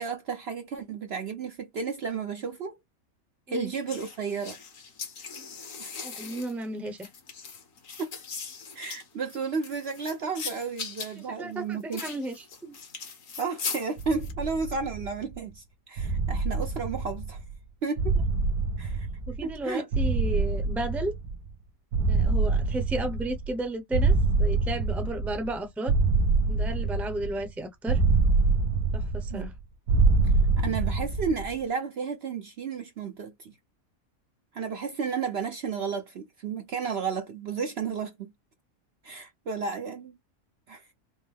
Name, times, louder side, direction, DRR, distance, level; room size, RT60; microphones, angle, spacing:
voice 1, 0.0-2.8 3.5-4.6 5.8-5.9 8.0-8.1 8.7-12.0 13.4-17.4 17.8-18.2 18.8-19.1 19.4-19.9 29.3-29.5 30.2-33.5 34.5-38.3 39.0-40.2 40.7-40.8, right 5 dB, 55° right, 0.8 m, -33 dB
sound 1, 3.9-14.3, left 5 dB, 65° left, 1.5 m, -39 dB
voice 2, 6.0-7.1 11.2-12.8 19.3-21.1 22.1-25.9 26.5-28.0 28.9-29.5, right 1 dB, ahead, 0.7 m, -33 dB
sound 2, 14.0-15.3 16.0-17.5 18.0-19.6 19.9-21.5 21.9-23.6 23.9-25.5 25.9-27.5 27.9-29.5 29.9-31.5, right 3 dB, 85° right, 1.3 m, -25 dB
5.2 x 2.1 x 3.4 m
omnidirectional pair, 1.5 m